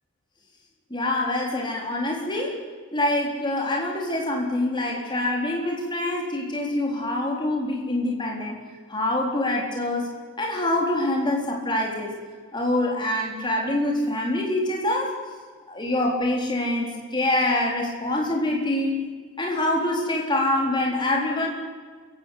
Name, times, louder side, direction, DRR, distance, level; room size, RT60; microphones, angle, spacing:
voice 1, 0.9-2.6 2.9-8.6 8.9-12.1 12.5-15.2 15.7-19.0 19.4-21.5, left 1 dB, 20° left, 0 dB, 4.2 m, -25 dB
27.5 x 16.0 x 8.6 m, 1.5 s
head